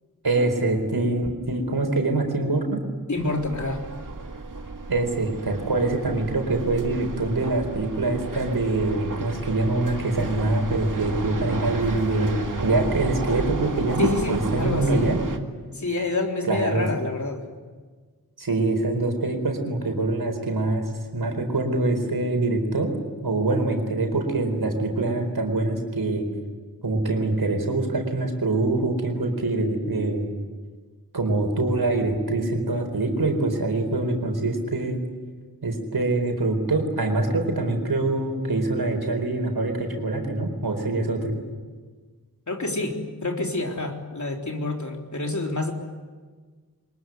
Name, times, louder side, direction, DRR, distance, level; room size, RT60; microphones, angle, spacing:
voice 1, 0.2-2.8 4.9-15.2 16.5-16.9 18.4-22.9 23.2-26.3 26.8-30.3 31.1-35.0 35.6-41.3, right 2 dB, 80° right, 4 dB, 4.4 m, -24 dB
voice 2, 3.1-3.9 14.0-15.1 15.7-17.5 42.5-45.7, left 2 dB, 50° left, 1 dB, 3.8 m, -27 dB
sound 1, 3.2-15.4, right 3 dB, 60° right, 2.1 m, -32 dB
23.5 x 21.5 x 9.4 m, 1.4 s
wide cardioid pair, 60°, 37 cm